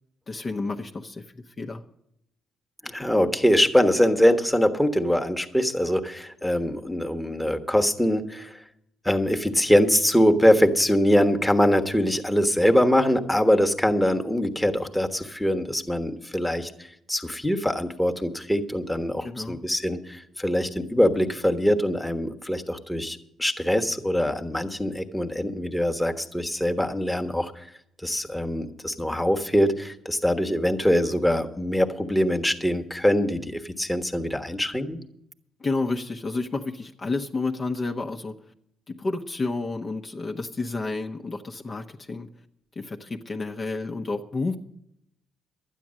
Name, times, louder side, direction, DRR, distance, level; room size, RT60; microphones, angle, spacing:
voice 1, 0.3-1.8 19.2-19.6 35.6-38.4 38.9-42.3 42.8-44.6, left 3 dB, 35° left, 4 dB, 0.9 m, -30 dB
voice 2, 2.8-8.6 9.0-16.7 17.1-27.7 28.0-35.0, equal, 5° left, 5 dB, 1.3 m, -23 dB
12.5 x 9.3 x 7.5 m, 0.76 s
cardioid pair, 90°, 0 cm